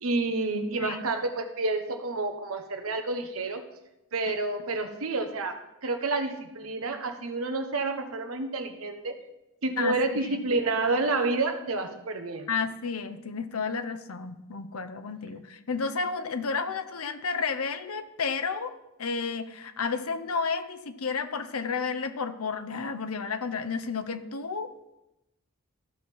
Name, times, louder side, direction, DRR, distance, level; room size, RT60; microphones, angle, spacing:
voice 1, 0.0-3.6 4.1-5.6 5.8-9.2 9.6-12.5, right 3 dB, 80° right, 7 dB, 1.1 m, -29 dB
voice 2, 9.8-10.4 12.5-18.7 19.0-24.7, left 5 dB, 90° left, 9 dB, 0.8 m, -32 dB
14.5 x 5.7 x 4.5 m, 0.92 s
head